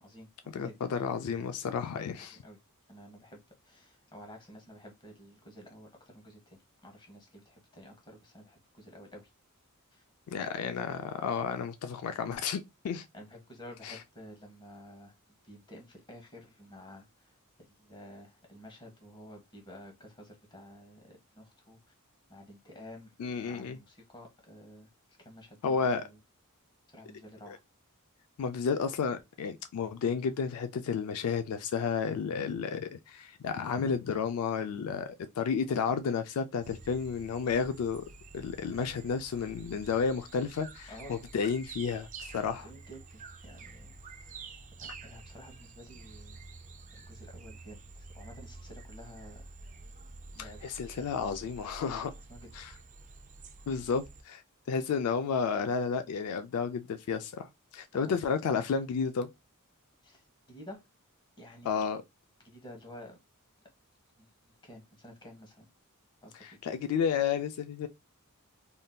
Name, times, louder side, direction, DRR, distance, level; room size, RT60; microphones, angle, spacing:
voice 1, 0.0-0.9 2.3-2.6 2.9-9.3 9.9-10.0 13.1-15.2 15.4-17.4 17.7-21.8 22.3-23.1 23.4-24.9 25.2-26.2 26.9-27.6 40.9-41.2 42.6-44.5 44.8-46.4 46.9-49.5 50.3-50.6 51.0-51.1 52.3-52.5 57.9-58.2 60.0-60.8 61.4-61.8 62.4-63.2 64.2-64.3 64.6-65.7 66.2-66.6, equal, 20° left, 0.9 m, -51 dB
voice 2, 0.5-2.4 10.3-13.0 13.8-14.0 23.2-23.8 25.6-26.1 27.5-27.6 28.4-38.1 38.3-42.7 50.4-52.1 52.5-52.7 53.7-54.4 54.7-59.3 61.6-62.0 66.4-67.9, left 6 dB, 80° left, 0.3 m, -32 dB
sound 1, 36.6-54.2, right 3 dB, 35° right, 0.4 m, -49 dB
3.5 x 2.6 x 2.2 m
head